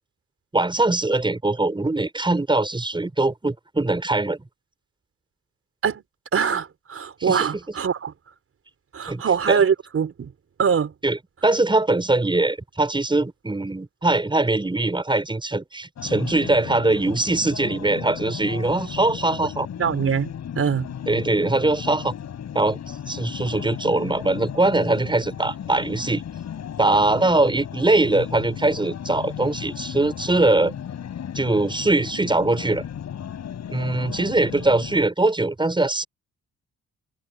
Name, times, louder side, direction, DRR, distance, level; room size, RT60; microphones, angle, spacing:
voice 1, 0.5-4.4 7.2-7.5 9.1-9.6 11.0-19.7 21.1-22.1 22.5-22.8 23.1-26.2 26.8-30.7 31.3-32.8 33.7-36.0, right 2 dB, 15° right, 6.4 m, -22 dB
voice 2, 6.3-8.1 8.9-10.3 10.6-10.9 19.8-20.3 20.6-20.9, right 7 dB, 50° right, 5.4 m, -23 dB
sound 1, 16.0-35.1, left 9 dB, 60° left, 7.5 m, -35 dB
cardioid pair, 90°, 30 cm